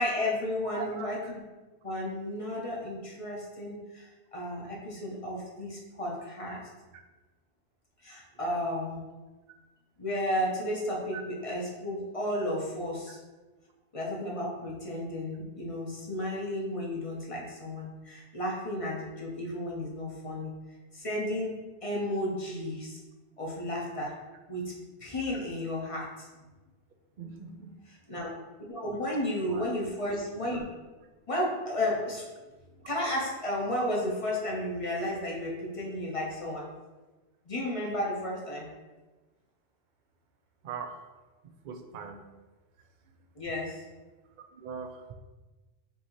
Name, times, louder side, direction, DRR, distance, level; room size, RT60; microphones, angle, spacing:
voice 1, 0.0-1.4 1.8-6.6 8.0-9.0 10.0-13.1 13.9-20.5 20.9-23.0 23.4-24.1 24.5-24.7 25.0-26.5 27.9-28.3 28.7-30.7 31.3-32.3 32.7-36.7 37.5-38.7 43.4-43.8, left 1 dB, 35° left, -3 dB, 0.8 m, -33 dB
voice 2, 0.7-1.1 8.4-8.7 11.1-11.2 27.2-27.7 28.8-29.0 29.4-29.6 40.6-41.0 41.6-42.2 44.6-44.9, right 6 dB, 60° right, 5 dB, 0.5 m, -40 dB
5.4 x 2.7 x 3.0 m, 1.2 s
omnidirectional pair, 1.1 m